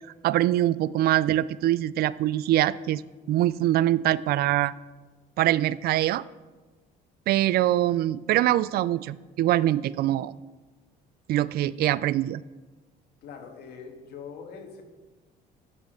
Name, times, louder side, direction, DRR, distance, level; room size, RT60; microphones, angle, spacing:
voice 1, 0.2-3.0 3.3-4.7 5.4-6.2 7.3-10.3 11.3-12.4, right 13 dB, 65° right, 19 dB, 0.4 m, -23 dB
voice 2, 13.2-14.8, left 6 dB, 75° left, 4 dB, 1.8 m, -42 dB
10.5 x 6.4 x 6.6 m, 1.3 s
cardioid pair, 110°, 17 cm